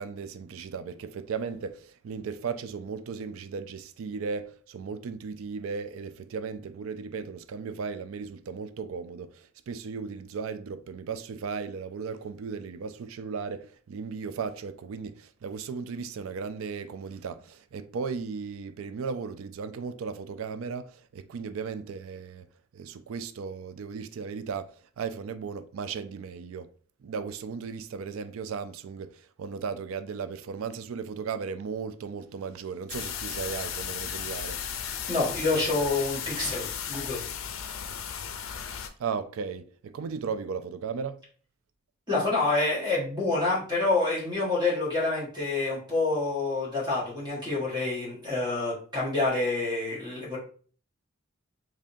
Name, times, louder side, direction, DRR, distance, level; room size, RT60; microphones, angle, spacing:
voice 1, 0.0-22.5 22.7-26.7 27.0-34.6 39.0-41.2, right 5 dB, 90° right, 0.4 m, -36 dB
sound 1, 32.9-38.9, left 8 dB, 80° left, 0.5 m, -35 dB
voice 2, 35.1-37.4 42.1-50.4, left 3 dB, 20° right, 1.5 m, -27 dB
3.6 x 3.3 x 2.6 m
head